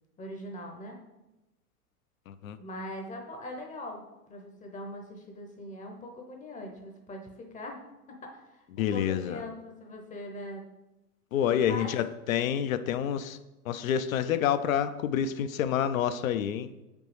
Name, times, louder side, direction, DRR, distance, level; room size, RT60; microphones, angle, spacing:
voice 1, 0.2-1.0 2.6-7.8 8.1-10.6 11.6-11.9, left 1 dB, 15° left, 2 dB, 0.7 m, -41 dB
voice 2, 2.3-2.6 8.8-9.4 11.3-13.4 13.7-16.7, left 9 dB, 65° left, 11 dB, 0.5 m, -28 dB
6.6 x 5.2 x 3.1 m, 0.98 s
hypercardioid pair, 100°, 46 cm